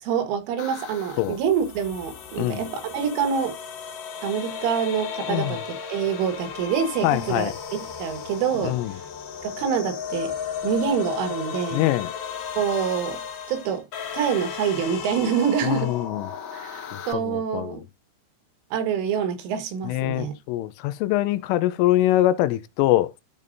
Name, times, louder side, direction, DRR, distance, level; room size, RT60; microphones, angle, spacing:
voice 1, 0.0-3.6 4.2-9.0 9.4-10.4 10.6-11.8 12.6-13.2 13.5-13.8 14.1-15.9 16.5-17.8 18.7-20.3, right 7 dB, 80° right, 4.0 m, -26 dB
sound 1, 0.6-17.1, left 7 dB, 65° left, 2.2 m, -35 dB
voice 2, 7.0-7.5 8.6-8.9 11.7-12.1 15.6-16.3 17.1-17.8 19.8-23.1, left 14 dB, 90° left, 3.3 m, -23 dB
14.0 x 5.4 x 2.6 m
omnidirectional pair, 5.6 m